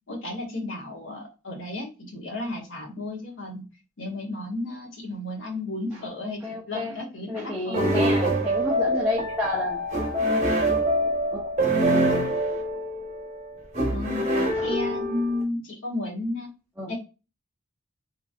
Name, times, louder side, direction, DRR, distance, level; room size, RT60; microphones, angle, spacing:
voice 1, 0.1-3.6 4.0-6.4 6.7-8.0 13.9-14.3 14.6-16.5 16.9-17.0, left 2 dB, 70° left, 1.0 m, -33 dB
voice 2, 6.4-6.9 7.3-9.8 11.3-11.5 14.5-14.8 16.8-16.9, left 1 dB, 10° right, 0.4 m, -30 dB
sound 1, 7.7-15.4, right 1 dB, 35° right, 0.9 m, -25 dB
3.0 x 2.6 x 2.4 m
head